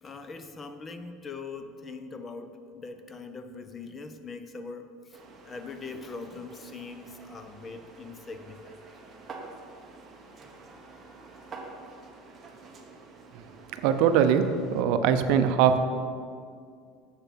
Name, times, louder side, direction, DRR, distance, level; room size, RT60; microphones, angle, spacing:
voice 1, 0.0-8.8, left 4 dB, 20° left, 8 dB, 0.5 m, -42 dB
sound 1, 5.1-14.8, right 3 dB, 20° right, 1.0 m, -48 dB
voice 2, 13.8-14.4 14.7-15.8, right 8 dB, 60° right, 9 dB, 0.6 m, -21 dB
7.3 x 7.0 x 5.9 m, 2.2 s
cardioid pair, 160°, 0 cm